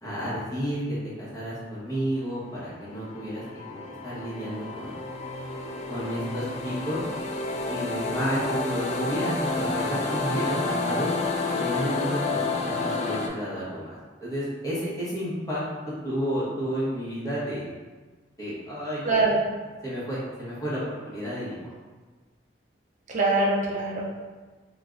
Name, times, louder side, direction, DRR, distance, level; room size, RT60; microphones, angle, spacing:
voice 1, 0.0-3.4 3.7-4.9 5.9-7.0 7.7-11.1 11.6-12.4 12.6-15.6 16.0-17.6 18.4-19.2 19.8-21.7, equal, 20° left, -8 dB, 0.9 m, -31 dB
sound 1, 2.6-13.3, left 3 dB, 40° left, 0.3 m, -30 dB
voice 2, 19.0-19.4 23.1-24.2, right 2 dB, 45° right, -2 dB, 0.5 m, -23 dB
3.3 x 2.3 x 2.4 m, 1.3 s
head